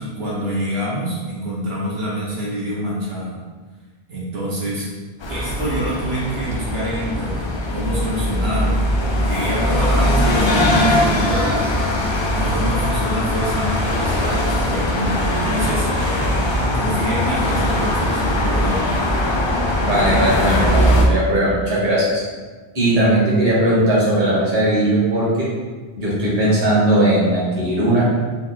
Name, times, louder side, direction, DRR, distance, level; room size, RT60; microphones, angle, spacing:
voice 1, 0.0-3.4 4.1-4.9 5.3-8.8 9.2-11.9 12.3-15.9 16.7-18.8, equal, 80° right, -6 dB, 1.1 m, -26 dB
sound 1, 5.2-21.1, left 1 dB, 45° left, 0.4 m, -20 dB
voice 2, 19.8-22.2 22.7-25.5 26.0-28.1, right 1 dB, 40° right, -7 dB, 1.1 m, -18 dB
4.0 x 2.1 x 4.0 m, 1.4 s
omnidirectional pair, 1.0 m